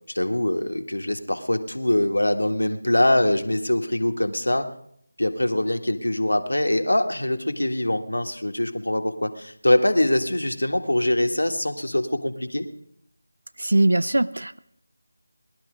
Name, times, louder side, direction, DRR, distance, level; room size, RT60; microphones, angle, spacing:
voice 1, 0.1-4.7 5.2-12.7, left 1 dB, 85° left, 6 dB, 1.6 m, -23 dB
voice 2, 13.6-14.6, right 2 dB, 75° right, 16 dB, 0.6 m, -21 dB
19.5 x 12.0 x 5.1 m, 0.71 s
figure-of-eight pair, 165°, 0 cm